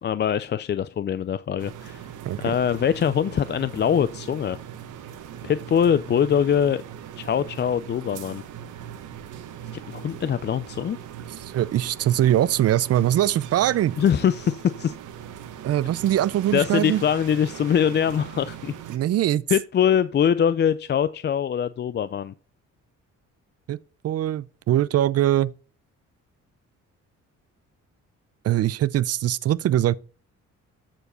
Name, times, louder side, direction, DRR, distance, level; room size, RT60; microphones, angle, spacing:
voice 1, 0.0-2.1 2.4-4.6 5.4-6.8 7.2-8.4 9.9-11.0 14.0-14.9 16.5-18.7 19.5-22.3, left 8 dB, 35° left, 0.4 m, -23 dB
sound 1, 1.6-19.0, right 9 dB, 85° right, 1.3 m, -40 dB
voice 2, 11.4-14.0 15.6-17.0 18.9-19.4 23.7-23.8 24.0-25.5 28.4-30.0, right 12 dB, 55° right, 0.5 m, -22 dB
13.5 x 4.7 x 4.3 m
cardioid pair, 90°, 30 cm